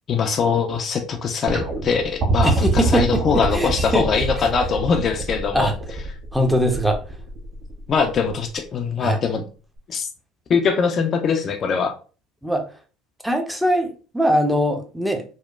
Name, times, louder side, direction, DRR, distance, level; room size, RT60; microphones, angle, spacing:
voice 1, 0.1-5.7 7.9-9.4 9.9-10.1 10.5-11.9, left 5 dB, 45° left, 5 dB, 0.4 m, -22 dB
sound 1, 1.5-8.6 9.8-9.9, right 3 dB, 45° right, 0.6 m, -27 dB
voice 2, 2.4-4.1 5.5-5.7 6.3-7.0 9.0-9.2 12.4-12.6 13.2-15.2, equal, 5° right, 4 dB, 0.6 m, -21 dB
3.0 x 2.0 x 2.3 m, 0.36 s
hypercardioid pair, 60°, 0 cm